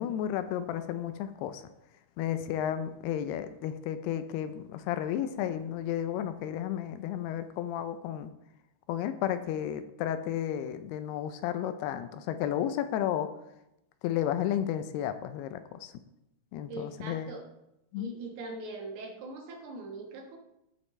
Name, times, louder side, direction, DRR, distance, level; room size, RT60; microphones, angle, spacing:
voice 1, 0.0-1.6 2.2-8.3 8.9-13.3 14.0-15.9 16.5-17.3 17.9-18.2, left 10 dB, 85° left, 10 dB, 2.5 m, -32 dB
voice 2, 16.7-17.5 18.0-20.4, right 2 dB, 75° right, 1 dB, 3.3 m, -41 dB
15.5 x 5.2 x 3.2 m, 0.86 s
omnidirectional pair, 4.7 m